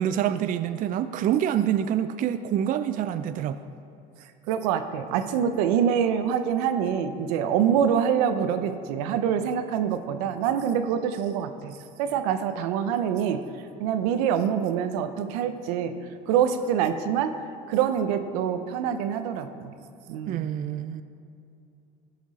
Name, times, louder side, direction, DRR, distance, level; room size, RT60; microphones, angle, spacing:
voice 1, 0.0-3.6 20.3-21.0, right 10 dB, 45° right, 11 dB, 0.4 m, -26 dB
voice 2, 4.5-13.4 13.8-15.9 16.3-17.3 17.7-19.7 20.1-20.5, right 8 dB, 90° right, 9 dB, 0.7 m, -25 dB
14.0 x 6.0 x 4.1 m, 2.7 s
supercardioid pair, 110°, 20 cm